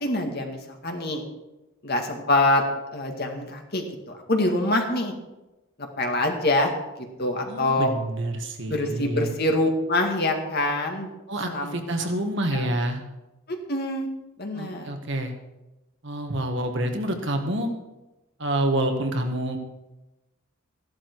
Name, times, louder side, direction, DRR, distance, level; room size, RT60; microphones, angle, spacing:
voice 1, 0.0-1.2 1.8-2.6 2.9-4.0 4.3-5.1 6.0-6.7 7.2-7.9 8.7-11.1 11.5-12.1 12.5-12.7 13.5-14.1 14.4-14.9, left 1 dB, 50° left, 2 dB, 2.1 m, -25 dB
voice 2, 7.5-9.3 11.3-13.0 14.5-15.3 16.0-17.7 18.4-19.6, right 1 dB, 60° right, 5 dB, 1.6 m, -27 dB
14.5 x 11.5 x 4.7 m, 1.0 s
head